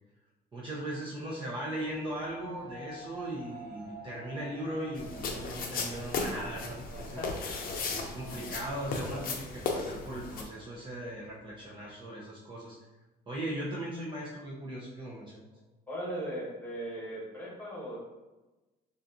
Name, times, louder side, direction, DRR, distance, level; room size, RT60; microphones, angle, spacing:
voice 1, 0.5-7.2 7.9-12.8 13.3-15.5, right 1 dB, 30° right, -6 dB, 0.7 m, -38 dB
sound 1, 1.8-11.9, right 1 dB, 60° right, 1.0 m, -50 dB
sound 2, 5.0-10.4, left 4 dB, 60° left, 0.6 m, -36 dB
voice 2, 6.9-7.3 8.3-9.2 15.9-18.0, right 1 dB, 10° left, -5 dB, 1.4 m, -39 dB
4.0 x 2.5 x 2.6 m, 1.1 s
cardioid pair, 115°, 17 cm